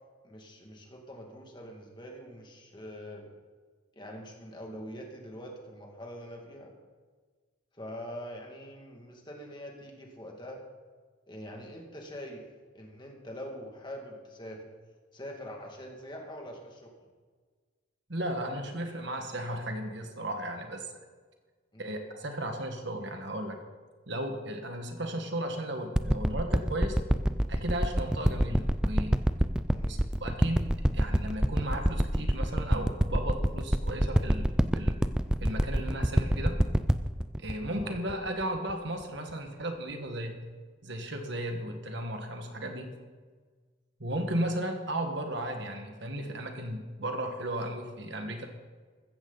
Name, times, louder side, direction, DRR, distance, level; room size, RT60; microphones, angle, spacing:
voice 1, 0.2-3.3 4.0-6.7 7.7-10.6 11.3-12.4 12.7-14.6 15.1-16.9 21.7-22.0 29.7-30.0 37.8-37.9, equal, 20° left, 1 dB, 2.1 m, -44 dB
voice 2, 18.1-20.9 21.8-23.6 24.1-27.0 27.5-29.2 29.9-35.0 35.4-36.6 37.4-40.4 40.8-42.9 44.0-48.5, right 1 dB, 55° right, 4 dB, 1.6 m, -35 dB
sound 1, 25.9-38.7 39.3-39.4, equal, 5° right, 0.3 m, -26 dB
14.5 x 14.5 x 4.0 m, 1.5 s
head